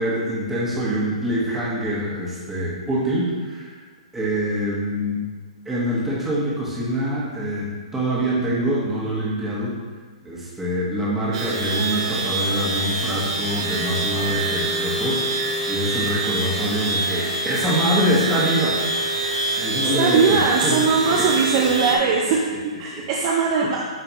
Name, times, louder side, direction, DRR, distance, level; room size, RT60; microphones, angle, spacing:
voice 1, 0.0-3.7 4.1-5.2 5.6-9.8 10.2-15.2 15.7-18.8 19.6-21.5 21.8-22.1, equal, 10° right, -7 dB, 1.7 m, -25 dB
sound 1, 11.3-22.0, right 2 dB, 55° right, 1.3 m, -25 dB
voice 2, 19.8-22.5 22.8-23.8, right 5 dB, 35° right, -1 dB, 0.6 m, -20 dB
9.2 x 3.6 x 3.1 m, 1.5 s
hypercardioid pair, 145°, 4 cm